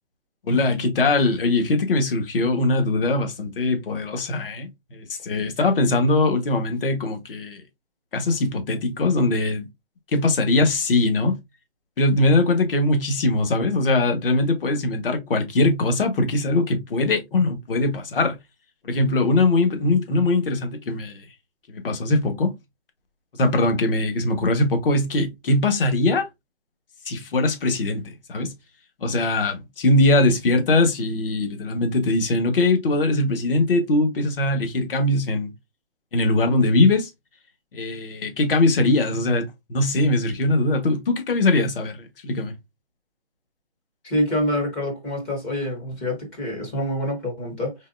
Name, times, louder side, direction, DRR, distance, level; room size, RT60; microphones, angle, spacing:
voice 1, 0.4-7.6 8.1-9.7 10.1-11.4 12.0-18.4 18.8-21.2 21.7-22.5 23.3-26.3 27.0-28.5 29.0-35.5 36.1-37.1 37.7-42.5, left 2 dB, 55° left, 1.4 m, -21 dB
voice 2, 44.0-47.8, equal, 10° left, 0.6 m, -26 dB
3.9 x 3.3 x 2.5 m
hypercardioid pair, 155°, 33 cm